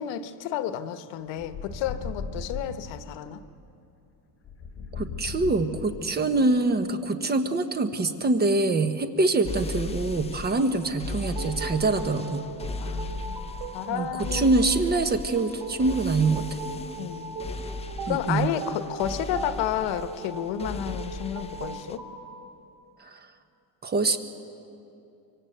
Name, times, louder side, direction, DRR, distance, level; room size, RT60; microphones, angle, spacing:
voice 1, 0.0-3.4 12.8-14.5 17.0-17.4 18.1-22.0, left 10 dB, 80° left, 10 dB, 1.3 m, -31 dB
sound 1, 1.4-2.9 4.4-6.3, left 5 dB, 30° left, 3.3 m, -37 dB
voice 2, 4.9-12.4 13.9-16.5 18.1-18.5 23.0-23.2 23.8-24.2, right 3 dB, 20° right, 8 dB, 1.2 m, -25 dB
sound 2, 9.4-22.0, left 2 dB, 15° left, 0.7 m, -37 dB
sound 3, 11.2-22.2, right 4 dB, 75° right, 4.4 m, -39 dB
25.5 x 24.5 x 8.0 m, 2.6 s
cardioid pair, 155°, 44 cm